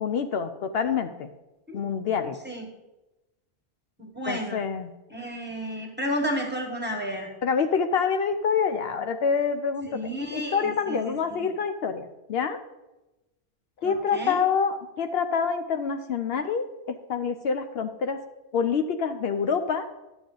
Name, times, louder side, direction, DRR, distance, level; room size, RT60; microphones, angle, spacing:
voice 1, 0.0-1.3 1.7-2.4 4.3-4.9 7.4-10.0 10.3-12.6 13.8-18.2 18.5-19.9, left 6 dB, 70° left, 8 dB, 0.8 m, -26 dB
voice 2, 4.0-4.6 5.1-7.3 9.9-11.5 13.8-14.4, equal, 10° right, 1 dB, 1.3 m, -32 dB
11.0 x 7.1 x 3.8 m, 1.0 s
omnidirectional pair, 1.1 m